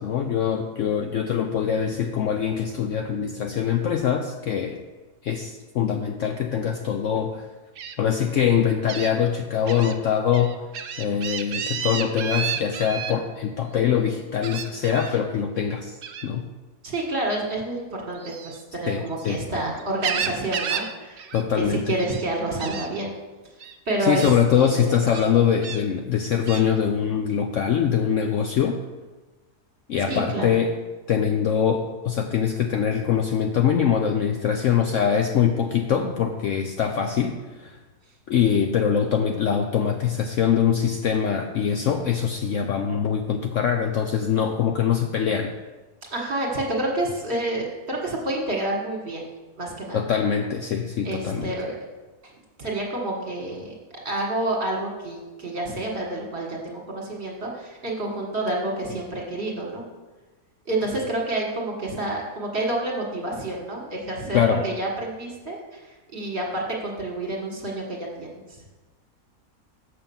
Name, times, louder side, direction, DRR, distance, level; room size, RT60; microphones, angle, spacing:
voice 1, 0.0-4.8 5.2-7.5 8.0-10.6 11.0-16.0 16.2-16.4 18.9-19.4 21.3-21.9 24.0-28.8 29.9-30.7 31.1-37.8 38.3-45.5 49.9-51.5 64.3-64.6, left 8 dB, 65° left, 5 dB, 0.8 m, -23 dB
Gull seagull, 7.8-7.9 8.9-9.1 9.7-9.9 10.3-13.1 14.4-15.1 16.0-16.3 18.1-19.4 19.8-20.9 21.2-21.4 21.7-22.2 22.6-22.9 23.6-23.7 24.2-24.4 25.1-25.8 26.5-26.7, right 7 dB, 70° right, 0.5 m, -31 dB
voice 2, 16.8-23.1 23.6-24.9 30.1-30.6 46.1-49.3 49.6-50.0 51.0-51.7 52.2-52.3 52.6-59.8 60.7-68.6, right 1 dB, 40° right, -1 dB, 1.9 m, -29 dB
6.7 x 5.6 x 7.0 m, 1.2 s
omnidirectional pair, 1.7 m